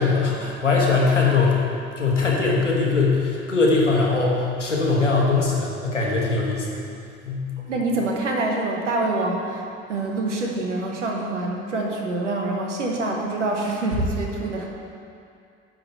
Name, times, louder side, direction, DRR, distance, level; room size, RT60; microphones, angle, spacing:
voice 1, 0.0-1.6 2.0-6.8 7.2-7.5, left 4 dB, 85° left, -3 dB, 1.2 m, -21 dB
voice 2, 7.7-14.7, right 2 dB, 80° right, 0 dB, 1.1 m, -26 dB
10.5 x 3.8 x 6.6 m, 2.4 s
figure-of-eight pair, 55°, 36 cm